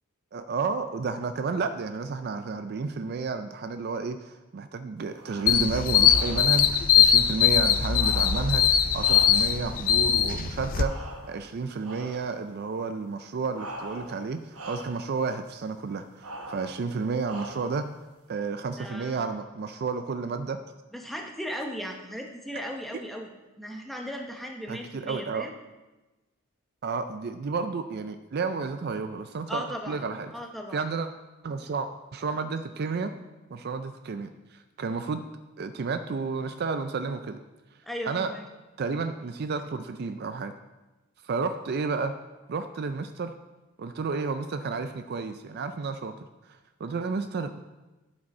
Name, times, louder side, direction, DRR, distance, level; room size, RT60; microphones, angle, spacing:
voice 1, 0.3-17.9 18.3-20.6 24.7-25.5 26.8-30.3 30.7-31.1 31.4-33.2 33.5-35.2 35.6-37.4 38.1-38.3 38.8-40.5 41.2-42.1 42.5-43.3 43.8-46.1 46.8-47.5, right 4 dB, 45° right, 9 dB, 0.4 m, -31 dB
sound 1, 5.1-5.7 6.0-6.7 7.9-9.7 10.8-11.5 11.8-12.3 13.5-14.3 14.5-15.1 16.2-16.8 17.2-17.8, right 1 dB, 80° right, 1.1 m, -42 dB
sound 2, 5.5-10.8, left 9 dB, 40° left, 0.4 m, -21 dB
voice 2, 18.8-19.3 20.9-23.3 23.6-25.5 29.5-30.0 30.3-30.8 37.9-38.4, equal, ahead, 2 dB, 0.8 m, -37 dB
12.0 x 5.1 x 4.2 m, 1.1 s
head